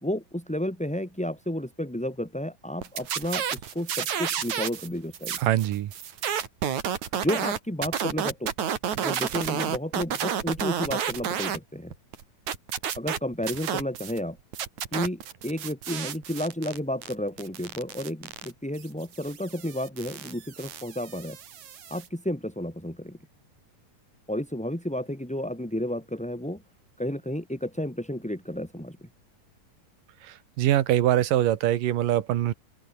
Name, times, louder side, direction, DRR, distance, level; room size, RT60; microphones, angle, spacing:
voice 1, 0.0-5.4 7.1-8.5 9.0-11.9 13.0-14.4 14.9-21.4 21.9-23.2 24.3-26.6 27.0-29.1, left 1 dB, 5° left, 1.7 m, -32 dB
sound 1, 2.8-4.9 5.1-11.6 11.9-14.2 14.5-22.1, right 9 dB, 60° right, 3.3 m, -31 dB
voice 2, 5.4-5.9 30.6-32.5, right 13 dB, 75° right, 2.9 m, -23 dB
open air
omnidirectional pair, 3.9 m